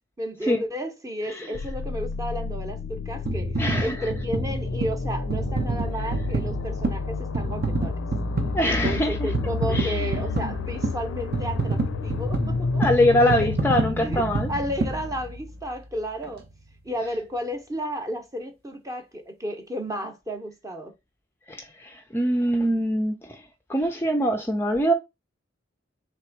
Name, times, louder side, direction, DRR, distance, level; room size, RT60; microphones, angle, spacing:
voice 1, 0.2-3.5 3.8-8.0 8.7-13.5 14.0-14.2 14.5-16.5 16.8-20.9, equal, 15° right, 0.8 m, -32 dB
sound 1, 1.5-15.3, left 4 dB, 90° left, 0.4 m, -31 dB
sound 2, 3.3-15.7 16.2-16.3, right 3 dB, 50° right, 0.7 m, -29 dB
voice 2, 3.6-4.0 8.5-9.3 9.7-10.2 12.8-14.5 21.5-23.4 23.7-24.9, equal, 10° left, 0.4 m, -23 dB
3.5 x 3.0 x 4.4 m
head